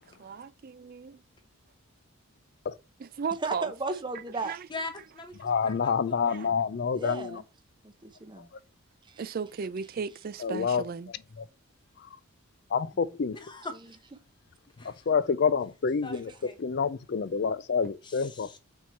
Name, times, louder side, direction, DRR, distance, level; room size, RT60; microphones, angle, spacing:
voice 1, 0.2-1.2 3.0-3.7 4.4-4.7 6.2-6.7 9.2-11.1, right 6 dB, 40° right, 0.3 m, -36 dB
voice 2, 3.4-4.5 6.9-7.4 7.8-8.5 9.1-9.2, right 3 dB, 20° right, 0.7 m, -35 dB
voice 3, 4.7-6.5 13.3-14.0 14.8-15.1 16.0-16.2 16.4-16.6 18.0-18.6, left 2 dB, 20° left, 0.9 m, -42 dB
voice 4, 5.4-7.4 10.4-10.8 11.4-11.5 12.7-13.4 14.8-16.3 16.6-18.6, left 6 dB, 50° left, 0.4 m, -28 dB
4.6 x 4.3 x 5.7 m
head